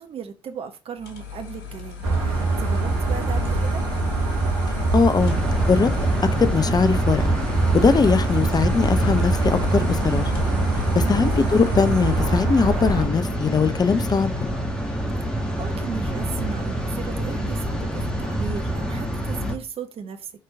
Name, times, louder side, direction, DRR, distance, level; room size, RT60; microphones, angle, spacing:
voice 1, 0.0-3.8 11.0-11.4 15.6-20.3, right 7 dB, 50° right, 1.1 m, -36 dB
sound 1, 1.0-12.5, left 6 dB, 75° left, 1.5 m, -39 dB
sound 2, 2.0-13.1, right 2 dB, 75° right, 1.5 m, -23 dB
voice 2, 4.9-5.4 5.7-5.9 6.4-7.4 7.7-10.3 10.9-14.5, left 5 dB, 30° left, 0.7 m, -21 dB
sound 3, 5.2-19.5, equal, 5° left, 2.2 m, -27 dB
5.8 x 4.6 x 4.7 m
figure-of-eight pair, 40°, 12 cm